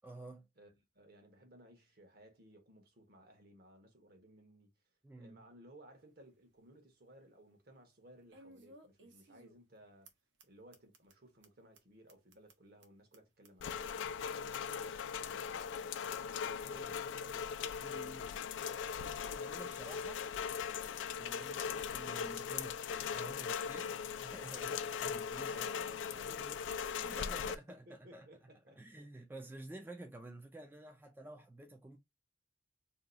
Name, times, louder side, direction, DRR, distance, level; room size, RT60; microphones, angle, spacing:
voice 1, 0.0-0.5 5.0-5.4 16.6-17.1 17.8-18.4 19.0-20.3 21.2-22.8 23.1-23.9 24.2-25.7 27.0-28.3 28.7-32.0, right 2 dB, 10° right, 0.3 m, -51 dB
voice 2, 0.6-4.7 5.2-10.1 10.4-14.9 15.1-17.6 18.7-19.9 21.4-21.7 25.5-28.8, right 1 dB, 55° right, 1.1 m, -60 dB
sound 1, 5.9-6.0 6.5-6.6 8.3-9.8 10.0-10.1 10.4-10.5 10.7-11.1 11.4-11.5 11.7-11.8 12.1-14.2 14.5-15.6 15.9-16.0 16.2-16.7 16.9-17.0 17.3-17.4 17.6-18.0 18.3-18.4 18.7-18.8 19.0-19.4 19.7-19.8 20.1-20.2 20.4-20.8 21.1-21.2 21.4-21.5 21.8-22.2 22.5-22.6 22.8-22.9 23.1-23.6, right 2 dB, 75° right, 0.8 m, -61 dB
Rain, 13.6-27.6, left 7 dB, 80° left, 0.3 m, -39 dB
2.8 x 2.3 x 3.8 m
head